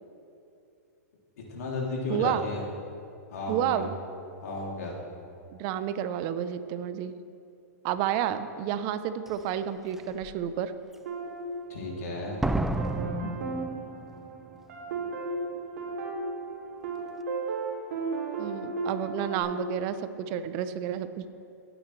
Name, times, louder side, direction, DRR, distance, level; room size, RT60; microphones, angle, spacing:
voice 1, 1.5-2.6 3.3-3.8 4.4-5.0 11.7-12.4, left 2 dB, 75° left, -3 dB, 3.0 m, -33 dB
voice 2, 2.1-2.4 3.5-4.0 5.5-7.1 7.8-10.7 13.2-13.4 18.4-21.3, right 10 dB, 45° right, 11 dB, 0.7 m, -30 dB
Slam, 9.3-9.4 10.0-10.3 12.4-14.3 14.6-14.7, right 2 dB, 5° right, 0.3 m, -31 dB
sound 1, 11.1-12.3 12.8-19.4, right 3 dB, 70° right, 2.9 m, -35 dB
18.0 x 8.9 x 3.3 m, 2.6 s
hypercardioid pair, 125°, 9 cm